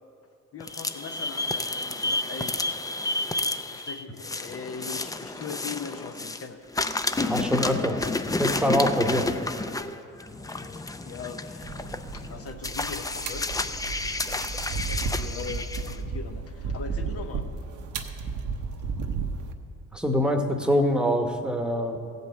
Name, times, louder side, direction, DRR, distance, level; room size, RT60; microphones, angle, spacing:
voice 1, 0.5-2.8 3.7-6.6 10.5-13.5 14.7-17.5, left 6 dB, 50° left, 6 dB, 0.8 m, -40 dB
sound 1, 0.6-6.5 6.7-16.0, left 2 dB, 10° left, 0.4 m, -30 dB
voice 2, 7.2-8.1 8.4-9.3 19.9-22.0, equal, 5° right, 4 dB, 1.1 m, -24 dB
sound 2, 11.6-19.5, right 5 dB, 80° right, 0.9 m, -33 dB
15.5 x 5.4 x 7.7 m, 2.6 s
cardioid pair, 90°, 30 cm